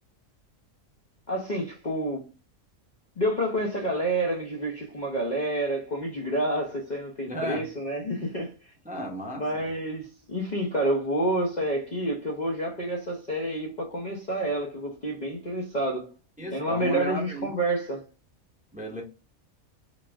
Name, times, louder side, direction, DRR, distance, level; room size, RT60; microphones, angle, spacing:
voice 1, 1.3-2.2 3.2-8.5 9.4-16.1 16.5-18.0, right 1 dB, 40° left, 0.7 m, -29 dB
voice 2, 7.3-7.7 8.8-9.6 16.4-17.5 18.7-19.0, equal, 5° right, 0.7 m, -34 dB
4.0 x 2.4 x 3.3 m
omnidirectional pair, 1.4 m